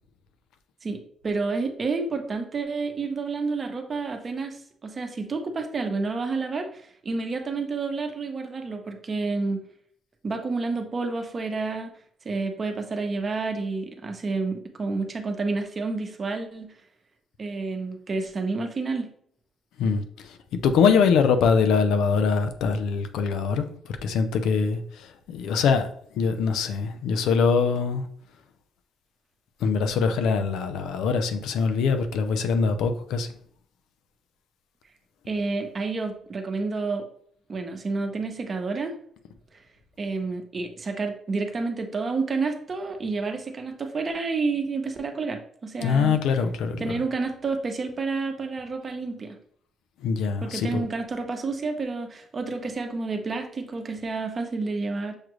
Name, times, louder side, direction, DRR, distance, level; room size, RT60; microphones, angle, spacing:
voice 1, 0.8-9.6 10.2-11.9 12.2-16.7 17.4-19.1 35.3-37.1 37.5-39.0 40.0-46.2 46.8-49.4 50.4-55.1, right 3 dB, 40° right, 0.8 m, -29 dB
voice 2, 19.8-25.9 26.1-28.1 29.6-33.3 45.8-47.0 50.0-50.9, left 5 dB, 85° left, 0.5 m, -23 dB
6.4 x 2.4 x 3.0 m
cardioid pair, 90°, 0 cm